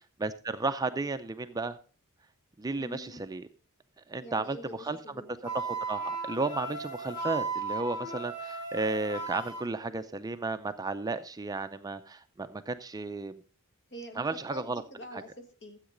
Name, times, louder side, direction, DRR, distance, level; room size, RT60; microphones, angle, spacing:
voice 1, 0.2-1.8 2.6-3.5 4.1-5.0 5.5-13.4 14.2-14.8 15.1-15.2, right 3 dB, 15° right, 10 dB, 0.5 m, -33 dB
voice 2, 2.8-3.2 4.2-5.3 13.9-15.8, equal, 55° left, 5 dB, 2.1 m, -45 dB
Wind instrument woodwind instrument, 5.4-9.6, right 3 dB, 20° left, 4.8 m, -35 dB
13.5 x 8.1 x 3.8 m, 0.38 s
head